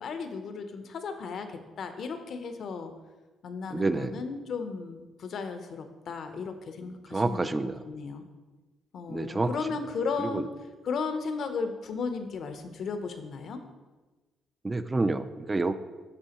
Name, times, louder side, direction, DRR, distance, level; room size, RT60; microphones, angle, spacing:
voice 1, 0.0-2.9 3.4-8.2 8.9-10.5 10.8-13.6, left 5 dB, 60° left, 8 dB, 0.6 m, -35 dB
voice 2, 3.7-4.1 7.1-7.8 9.1-9.5 10.2-10.4 14.6-15.7, right 2 dB, 25° right, 11 dB, 0.3 m, -28 dB
9.9 x 3.6 x 2.9 m, 1.2 s
cardioid pair, 90°, 0 cm